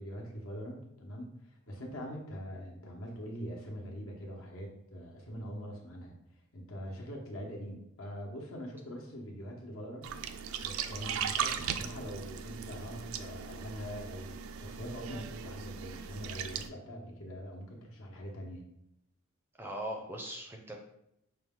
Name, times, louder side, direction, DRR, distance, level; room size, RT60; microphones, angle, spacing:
voice 1, 0.0-1.3 1.7-6.1 6.5-10.1 10.6-18.6, equal, 75° left, -1 dB, 1.1 m, -43 dB
sound 1, 10.0-16.7, right 7 dB, 75° right, 0.3 m, -38 dB
voice 2, 19.6-20.8, right 1 dB, 10° right, 2 dB, 0.4 m, -39 dB
6.0 x 2.3 x 3.6 m, 0.80 s
head